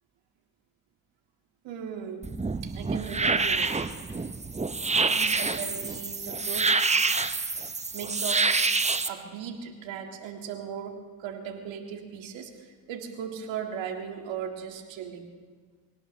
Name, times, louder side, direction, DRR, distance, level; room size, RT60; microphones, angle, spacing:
voice 1, 1.6-2.3 2.6-3.8 4.9-6.8 7.0-7.2 7.9-15.3, right 8 dB, 70° right, 4 dB, 2.1 m, -38 dB
sound 1, 2.2-9.1, right 4 dB, 15° right, 0.8 m, -27 dB
25.0 x 17.5 x 3.2 m, 1.5 s
hypercardioid pair, 55°, 46 cm